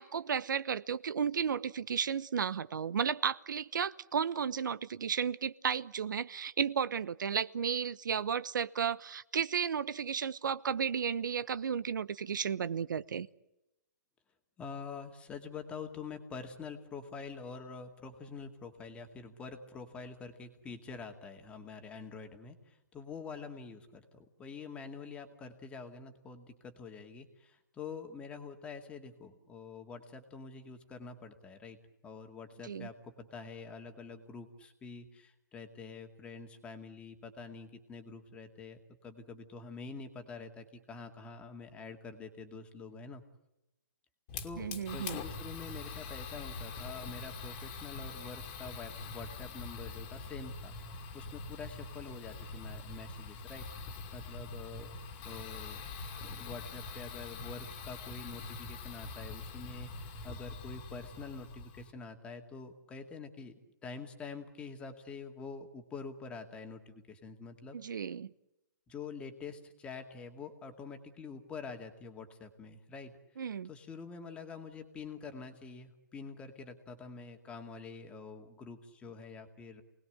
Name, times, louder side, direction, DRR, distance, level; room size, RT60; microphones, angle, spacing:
voice 1, 0.0-13.3 32.6-32.9 44.6-45.2 67.7-68.3 73.4-73.7, right 7 dB, 65° right, 16 dB, 0.9 m, -33 dB
voice 2, 14.6-31.8 32.0-43.2 44.4-50.7 51.1-53.7 54.1-54.9 55.2-55.8 56.2-67.8 68.9-73.1 73.6-79.8, left 5 dB, 10° left, 6 dB, 2.3 m, -46 dB
Fire, 44.3-61.9, left 4 dB, 25° left, 2.4 m, -44 dB
29.0 x 19.5 x 8.0 m, 0.92 s
hypercardioid pair, 155°, 11 cm